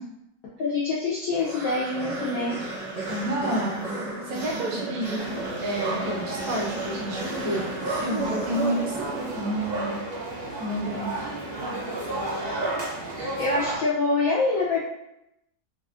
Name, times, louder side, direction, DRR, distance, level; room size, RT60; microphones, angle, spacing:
voice 1, 0.6-2.6 13.4-14.8, left 3 dB, 70° left, -6 dB, 0.9 m, -25 dB
sound 1, 1.3-9.8, right 2 dB, 20° right, 0.6 m, -33 dB
voice 2, 3.1-3.8 4.2-5.2 5.6-10.0 10.6-11.3, right 1 dB, 75° right, -3 dB, 1.2 m, -30 dB
sound 2, 5.2-13.8, right 2 dB, 55° right, 0.7 m, -32 dB
3.2 x 2.3 x 2.4 m, 0.84 s
omnidirectional pair, 1.7 m